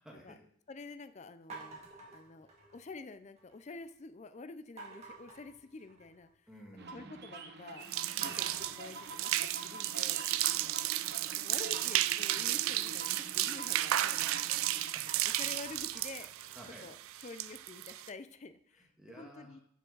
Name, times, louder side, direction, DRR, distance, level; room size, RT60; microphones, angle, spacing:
voice 1, 0.0-0.4 1.7-2.2 6.5-7.3 8.1-8.7 10.4-11.5 14.5-15.5 16.5-16.9 18.7-19.6, equal, 5° right, -2 dB, 1.6 m, -55 dB
voice 2, 0.7-6.3 6.9-7.9 8.2-10.3 11.3-16.5 16.8-16.9 17.2-18.9 19.2-19.6, left 3 dB, 30° left, 11 dB, 0.4 m, -49 dB
sound 1, 1.5-3.0 3.4-3.9 4.8-6.3 6.6-7.2 7.6-7.7 8.2-10.3 11.7-14.5 14.9-17.8, right 4 dB, 30° right, 1.9 m, -52 dB
sound 2, 6.8-14.9, right 3 dB, 50° right, 0.9 m, -47 dB
sound 3, 7.8-18.1, right 14 dB, 70° right, 0.3 m, -33 dB
11.5 x 6.0 x 3.9 m, 0.67 s
head